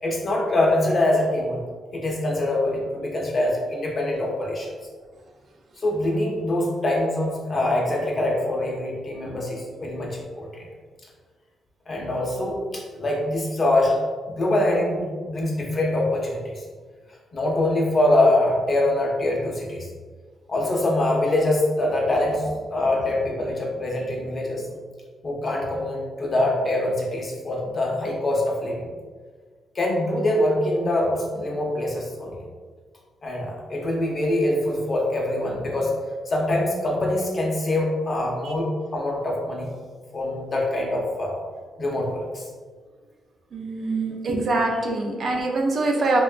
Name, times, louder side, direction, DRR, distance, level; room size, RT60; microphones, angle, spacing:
voice 1, 0.0-1.6 1.9-4.7 5.8-10.7 11.9-16.6 17.3-19.9 20.5-24.6 25.2-28.9 29.7-32.3 33.2-35.9 36.3-39.7 40.1-41.3 41.8-42.4 44.8-44.9 45.9-46.2, left 1 dB, 35° left, -2 dB, 0.6 m, -24 dB
voice 2, 43.5-46.2, right 2 dB, 55° right, 1 dB, 0.4 m, -24 dB
2.9 x 2.2 x 2.3 m, 1.5 s
cardioid pair, 110°, 0 cm